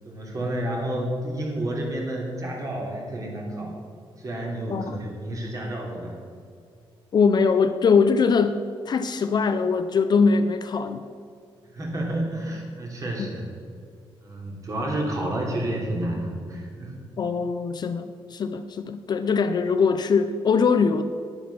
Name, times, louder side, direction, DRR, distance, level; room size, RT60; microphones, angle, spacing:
voice 1, 0.0-3.7 4.2-6.2 11.7-13.4 14.2-17.0, right 1 dB, 35° right, -1 dB, 3.2 m, -30 dB
voice 2, 7.1-8.6 8.9-11.1 13.2-13.3 17.2-21.0, left 5 dB, 45° left, 9 dB, 0.6 m, -22 dB
10.5 x 10.0 x 6.0 m, 2.3 s
cardioid pair, 125°, 10 cm